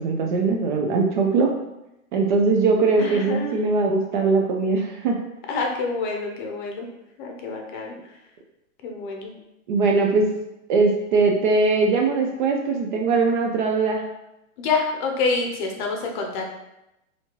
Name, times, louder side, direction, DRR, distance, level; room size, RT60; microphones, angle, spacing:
voice 1, 0.0-1.5 2.1-5.2 9.7-10.2 10.7-14.0, right 4 dB, 40° right, 1 dB, 0.4 m, -21 dB
voice 2, 3.0-3.5 5.5-6.9 7.2-7.9 8.8-9.3 14.6-16.4, left 4 dB, 35° left, 2 dB, 0.7 m, -27 dB
4.1 x 2.8 x 2.9 m, 0.91 s
hypercardioid pair, 140°, 41 cm